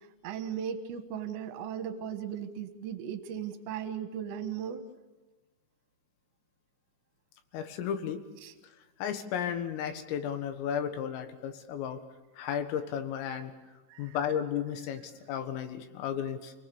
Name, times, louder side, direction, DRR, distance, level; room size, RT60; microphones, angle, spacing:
voice 1, 0.2-4.8 8.4-8.5 13.9-14.2, right 8 dB, 70° right, 8 dB, 3.5 m, -37 dB
voice 2, 7.5-8.2 9.0-12.0 12.4-13.5 14.0-16.5, left 8 dB, 85° left, 7 dB, 4.2 m, -34 dB
29.0 x 19.5 x 7.1 m, 1.2 s
omnidirectional pair, 5.8 m